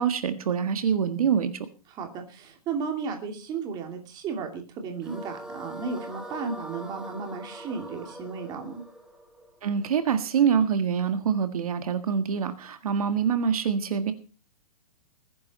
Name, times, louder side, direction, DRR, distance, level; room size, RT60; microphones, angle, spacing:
voice 1, 0.0-1.5 9.6-14.1, right 7 dB, 65° right, 9 dB, 1.8 m, -25 dB
voice 2, 1.9-8.8, right 5 dB, 20° right, 4 dB, 2.7 m, -34 dB
sound 1, 5.0-10.2, right 1 dB, 5° right, 1.9 m, -42 dB
20.5 x 10.5 x 4.2 m, 0.36 s
hypercardioid pair, 160°, 20 cm